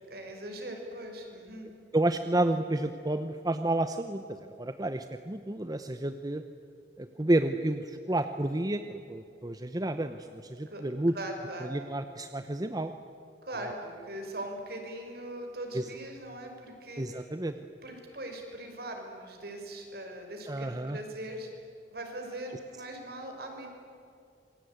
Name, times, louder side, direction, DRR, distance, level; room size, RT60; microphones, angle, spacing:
voice 1, 0.1-1.7 10.7-10.8 11.1-11.7 13.4-17.3 17.8-21.6 21.9-23.7, right 1 dB, 60° right, 3 dB, 5.6 m, -40 dB
voice 2, 1.9-4.2 4.6-6.4 7.0-11.1 11.7-12.9 15.7-15.8 17.0-17.5 20.5-21.0, right 1 dB, 20° right, 8 dB, 0.8 m, -30 dB
27.0 x 22.5 x 9.4 m, 2.5 s
head